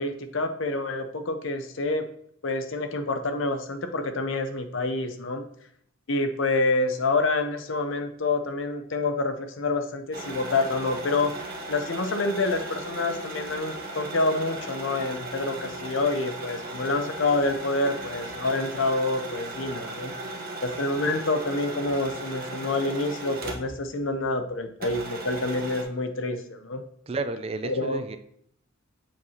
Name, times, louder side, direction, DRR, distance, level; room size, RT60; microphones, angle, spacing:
voice 1, 0.0-2.0 2.4-5.4 6.1-11.3 11.7-20.1 20.6-26.8 27.6-28.0, left 2 dB, 65° left, 7 dB, 0.7 m, -27 dB
sound 1, 10.1-23.9 24.2-24.3 24.8-25.8, right 2 dB, 45° right, 1.1 m, -37 dB
voice 2, 27.1-28.2, right 3 dB, 30° right, 10 dB, 0.3 m, -31 dB
7.3 x 4.6 x 2.8 m, 0.66 s
head